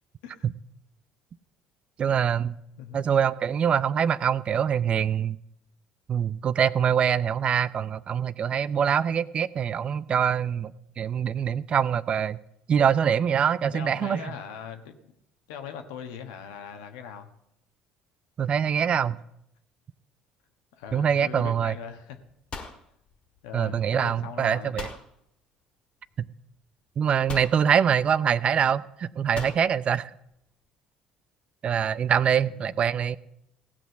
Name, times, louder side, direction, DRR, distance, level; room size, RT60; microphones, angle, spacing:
voice 1, 2.0-2.6 2.9-5.4 6.1-10.7 11.0-12.4 12.7-14.2 18.4-19.2 20.9-21.7 23.5-24.9 26.2-26.3 27.0-30.1 31.6-33.2, right 8 dB, 45° right, 17 dB, 0.5 m, -24 dB
voice 2, 13.7-15.0 15.5-17.3 20.7-22.2 23.4-24.7 32.4-32.8, left 7 dB, 75° left, 6 dB, 1.3 m, -40 dB
sound 1, 22.2-23.7 24.8-25.1 26.2-26.3 27.3-27.6 29.4-29.7, left 4 dB, 40° left, 2.0 m, -39 dB
16.5 x 6.1 x 8.0 m, 0.79 s
hypercardioid pair, 60°, 3 cm